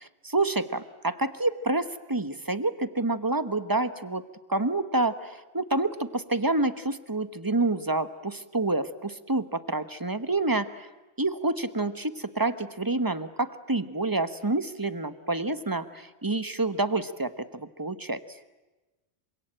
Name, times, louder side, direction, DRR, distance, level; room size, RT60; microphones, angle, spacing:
voice 1, 0.0-4.2 4.5-10.9 11.2-18.2, right 2 dB, 20° right, 12 dB, 1.1 m, -28 dB
27.0 x 25.0 x 8.9 m, 1.1 s
omnidirectional pair, 1.1 m